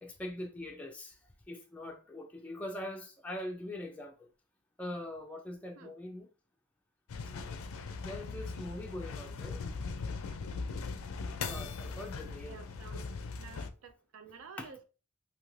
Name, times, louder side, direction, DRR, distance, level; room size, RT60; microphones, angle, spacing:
voice 1, 0.0-1.2 1.5-4.3 4.8-6.3 8.0-9.6 11.4-12.6 14.6-14.7, left 1 dB, 5° left, 0.3 m, -42 dB
sound 1, 7.1-13.7, left 4 dB, 80° left, 0.4 m, -40 dB
voice 2, 12.5-13.0 13.4-14.8, right 6 dB, 85° right, 0.4 m, -51 dB
2.8 x 2.4 x 3.1 m
head